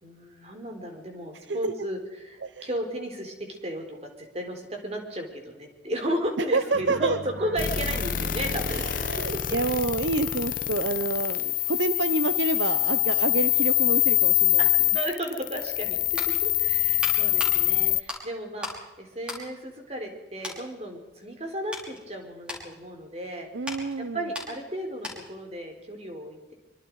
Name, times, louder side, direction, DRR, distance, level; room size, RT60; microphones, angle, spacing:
voice 1, 0.0-2.0 2.2-4.0 4.3-8.8 14.6-14.7 14.9-16.0 16.4-23.5 24.0-26.5, right 1 dB, 35° right, 3 dB, 4.0 m, -34 dB
voice 2, 6.4-7.2 8.6-14.7 23.5-24.3, right 3 dB, 80° right, 12 dB, 0.8 m, -28 dB
sound 1, 6.7-9.6, right 2 dB, 60° right, 2.1 m, -43 dB
sound 2, 7.6-18.0, left 14 dB, 45° left, 0.8 m, -25 dB
sound 3, 16.1-18.9 19.2-20.1 20.4-20.7 21.2-25.5 25.7-25.9, left 2 dB, 5° right, 5.3 m, -39 dB
24.5 x 24.0 x 4.8 m, 1.1 s
head